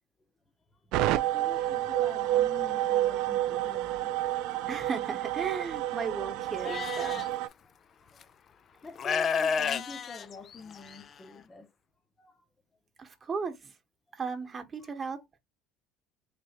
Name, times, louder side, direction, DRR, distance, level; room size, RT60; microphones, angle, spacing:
voice 1, 0.7-4.4 7.6-7.7 8.0-11.7 12.2-12.4 13.0-13.2 14.8-14.9, left 3 dB, 25° left, 0.9 m, -47 dB
sound 1, 0.9-7.5, right 14 dB, 70° right, 0.3 m, -29 dB
voice 2, 4.7-7.2 13.0-13.7 14.1-15.2, right 5 dB, 35° right, 1.1 m, -35 dB
Livestock farm animals working animals, 6.6-7.3 8.2-8.3 9.0-11.0, left 6 dB, 45° left, 0.4 m, -30 dB
3.3 x 2.8 x 2.8 m
hypercardioid pair, 75°, 0 cm